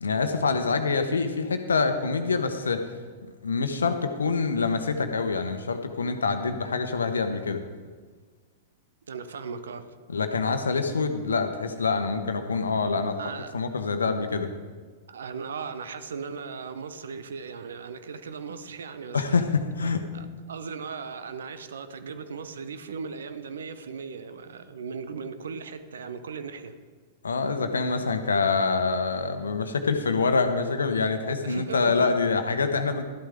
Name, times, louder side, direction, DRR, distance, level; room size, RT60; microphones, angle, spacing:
voice 1, 0.0-2.8 3.4-7.6 10.1-13.2 13.5-14.5 19.1-20.1 27.2-33.0, left 4 dB, 75° left, 8 dB, 1.0 m, -26 dB
voice 2, 9.1-9.9 13.2-13.6 15.1-19.4 20.1-26.7 31.4-32.1, right 5 dB, 70° right, 11 dB, 0.8 m, -37 dB
13.0 x 11.5 x 3.7 m, 1.5 s
figure-of-eight pair, 100°, 0 cm